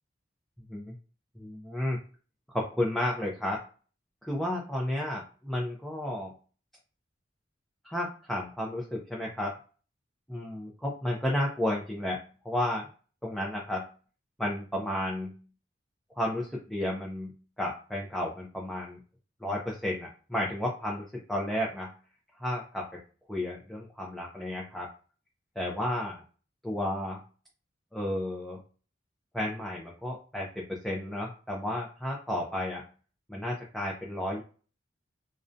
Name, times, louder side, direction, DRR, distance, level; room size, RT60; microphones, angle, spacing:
voice 1, 1.4-2.0 2.5-3.6 4.2-6.3 7.8-9.5 10.3-12.9 13.2-13.8 14.4-15.4 16.2-17.3 17.6-19.0 19.4-21.9 22.4-23.0 23.3-24.9 25.6-26.2 26.6-27.2 27.9-28.6 29.3-32.8 33.3-34.4, left 1 dB, ahead, -4 dB, 0.4 m, -32 dB
2.5 x 2.1 x 2.5 m, 0.37 s
head